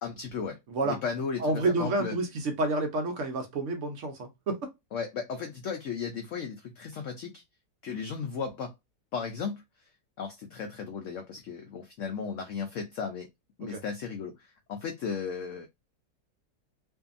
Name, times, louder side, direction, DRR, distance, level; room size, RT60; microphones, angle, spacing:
voice 1, 0.0-0.6 0.8-2.1 4.9-7.4 7.8-8.7 9.1-9.6 10.2-13.3 13.6-15.7, left 6 dB, 90° left, 0.6 m, -35 dB
voice 2, 0.7-1.0 1.4-4.7 13.6-13.8, right 2 dB, 65° right, 0.8 m, -29 dB
2.6 x 2.6 x 2.4 m
omnidirectional pair, 1.9 m